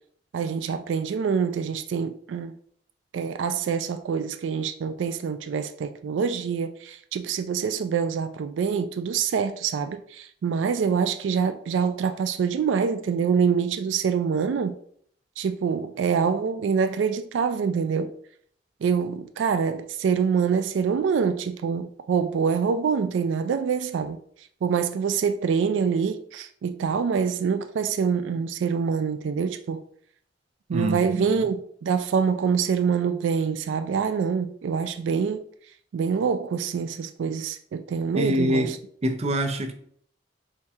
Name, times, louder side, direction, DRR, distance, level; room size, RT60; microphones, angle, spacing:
voice 1, 0.3-2.5 3.1-14.7 15.4-18.1 18.8-24.2 24.6-29.8 30.7-35.4 35.9-38.8, right 6 dB, 90° right, 0.3 m, -25 dB
voice 2, 30.7-31.5 38.1-38.7 39.0-39.7, equal, 35° right, 0.5 m, -25 dB
4.5 x 2.7 x 3.5 m
head